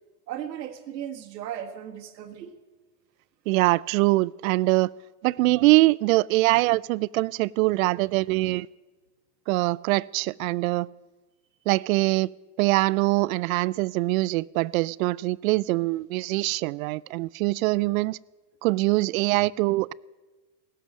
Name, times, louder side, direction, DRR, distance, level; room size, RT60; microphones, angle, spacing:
voice 1, 0.3-2.5, right 10 dB, 80° right, 7 dB, 1.8 m, -36 dB
voice 2, 3.5-4.9 5.2-8.7 9.5-10.9 11.7-12.3 12.6-18.2 18.6-19.9, right 21 dB, 60° right, 23 dB, 0.5 m, -23 dB
18.0 x 7.8 x 9.2 m, 1.3 s
hypercardioid pair, 115°, 49 cm